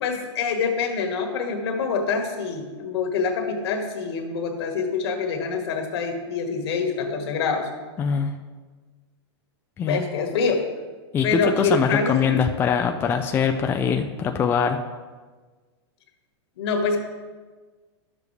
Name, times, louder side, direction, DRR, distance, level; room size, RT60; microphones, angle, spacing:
voice 1, 0.0-7.7 9.9-10.6 11.2-12.3 16.6-17.0, left 5 dB, 65° left, 3 dB, 1.6 m, -25 dB
voice 2, 8.0-8.3 9.8-10.0 11.1-14.8, left 6 dB, 15° left, 5 dB, 0.3 m, -23 dB
11.5 x 7.0 x 3.3 m, 1.4 s
hypercardioid pair, 145°, 15 cm